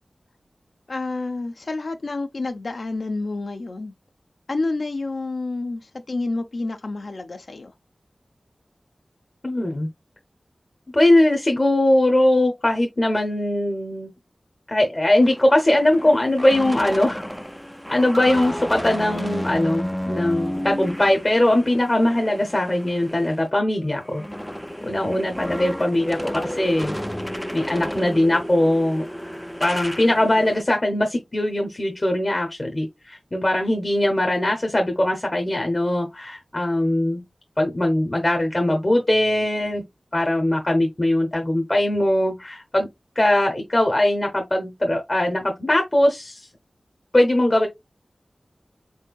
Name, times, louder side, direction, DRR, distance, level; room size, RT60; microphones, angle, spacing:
voice 1, 0.9-3.9 4.5-7.7, left 3 dB, 75° left, 0.6 m, -29 dB
voice 2, 9.4-9.9 10.9-14.1 14.7-17.2 17.9-24.2 24.8-26.9 27.5-29.1 29.6-37.2 37.6-39.8 40.1-42.9 43.2-46.5 47.1-47.7, left 1 dB, 40° left, 0.8 m, -20 dB
sound 1, 15.0-23.4 23.8-30.6, equal, ahead, 0.3 m, -32 dB
4.3 x 3.6 x 2.3 m
cardioid pair, 45°, 0 cm